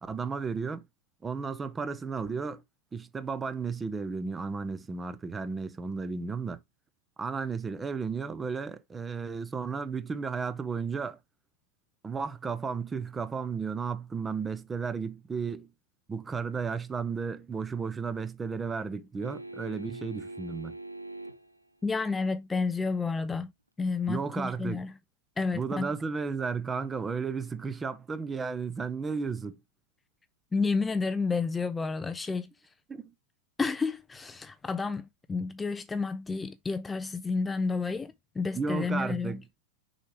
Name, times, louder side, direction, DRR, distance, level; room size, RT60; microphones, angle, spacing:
voice 1, 0.0-0.8 1.2-2.6 2.9-6.6 7.2-11.2 12.0-15.7 16.1-20.7 24.1-24.9 25.5-29.6 32.9-33.1 38.5-39.4, right 5 dB, 15° right, 0.7 m, -33 dB
sound 1, 19.2-21.6 24.2-24.3, right 2 dB, 85° right, 0.5 m, -42 dB
voice 2, 21.8-23.5 23.8-24.9 25.4-25.9 30.5-32.5 33.6-39.4, left 4 dB, 15° left, 0.4 m, -30 dB
6.4 x 4.7 x 3.3 m
figure-of-eight pair, 90°, 0 cm